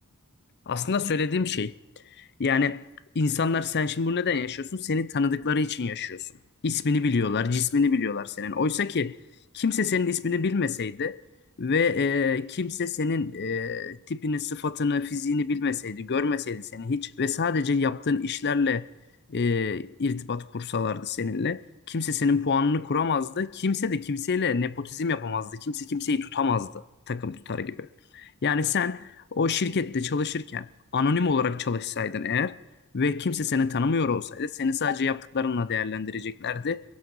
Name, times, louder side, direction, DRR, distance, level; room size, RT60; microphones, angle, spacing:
voice 1, 0.7-1.7 2.2-2.8 3.1-6.3 6.6-9.2 9.5-11.2 11.6-18.9 19.3-27.9 28.1-32.6 32.9-36.8, left 5 dB, 50° left, 0.6 m, -27 dB
22.5 x 22.0 x 5.5 m
head